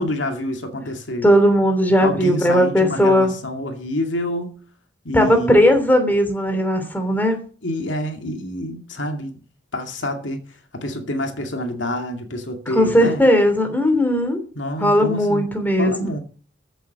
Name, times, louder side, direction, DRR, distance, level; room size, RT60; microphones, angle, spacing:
voice 1, 0.0-1.3 2.0-4.6 5.0-5.6 7.6-9.4 9.7-10.4 10.7-13.2 14.6-15.5 15.8-16.2, left 1 dB, 80° left, 2.4 m, -27 dB
voice 2, 1.2-3.3 5.1-7.4 12.7-14.4 14.8-16.1, equal, 10° left, 3.0 m, -17 dB
14.5 x 8.0 x 6.7 m
head